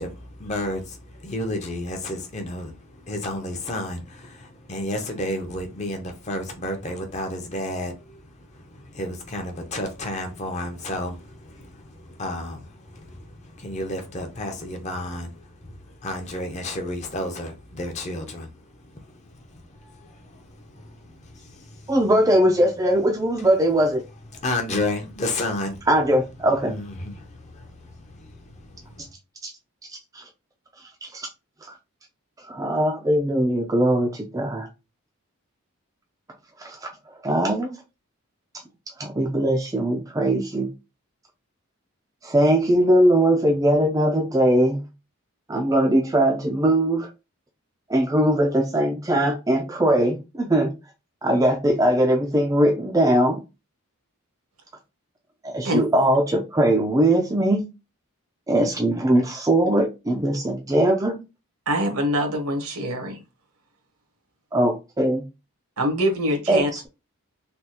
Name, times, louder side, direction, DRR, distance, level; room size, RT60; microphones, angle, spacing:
voice 1, 0.0-8.2 8.5-15.3 15.7-15.8 16.0-18.5 19.5-21.1 21.4-21.8 24.3-25.8 26.6-28.6, left 1 dB, 30° left, 0.6 m, -32 dB
voice 2, 21.9-24.0 25.9-26.7 31.1-31.3 32.5-34.7 37.2-37.8 39.0-40.7 42.2-44.8 45.5-47.1 47.9-50.7 51.2-53.4 55.4-57.6 58.5-61.2 64.5-65.2 66.5-66.9, right 1 dB, 15° right, 0.3 m, -20 dB
voice 3, 61.7-63.1 65.8-66.9, equal, 80° right, 1.0 m, -24 dB
3.3 x 2.3 x 2.8 m
head